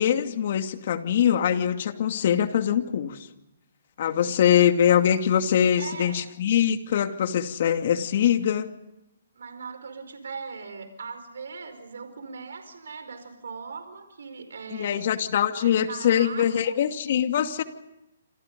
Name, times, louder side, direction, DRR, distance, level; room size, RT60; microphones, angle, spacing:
voice 1, 0.0-3.2 4.0-8.7 14.7-17.6, left 9 dB, 55° left, 7 dB, 2.5 m, -23 dB
voice 2, 4.0-4.4 5.8-6.2 9.3-15.1 15.5-16.7, right 5 dB, 75° right, 9 dB, 4.9 m, -40 dB
28.0 x 27.5 x 5.4 m, 0.90 s
hypercardioid pair, 140°, 0 cm